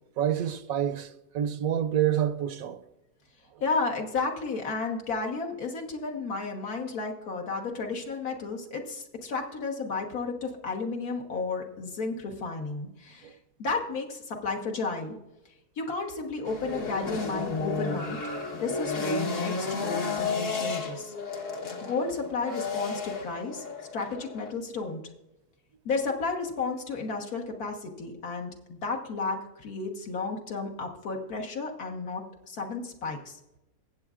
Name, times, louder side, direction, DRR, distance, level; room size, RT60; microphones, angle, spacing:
voice 1, 0.2-2.8 13.2-13.3, right 10 dB, 70° right, 1.0 m, -28 dB
voice 2, 3.6-13.3 13.6-15.2 15.8-18.2 18.5-21.1 21.8-23.6 23.9-25.0 25.9-33.4, left 4 dB, 70° left, 1.8 m, -32 dB
sound 1, 16.4-24.5, left 4 dB, 55° left, 1.6 m, -33 dB
21.0 x 8.1 x 2.5 m
omnidirectional pair, 1.6 m